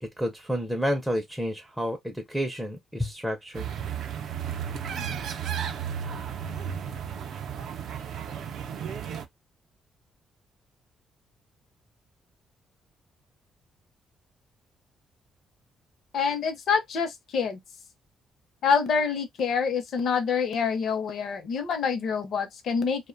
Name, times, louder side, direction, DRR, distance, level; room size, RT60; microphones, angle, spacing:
voice 1, 0.0-3.6, equal, 5° right, 0.4 m, -30 dB
sound 1, 3.5-9.2, right 8 dB, 70° right, 0.4 m, -33 dB
voice 2, 16.1-17.6 18.6-23.1, left 6 dB, 65° left, 0.6 m, -26 dB
2.5 x 2.1 x 2.4 m
cardioid pair, 115°, 0 cm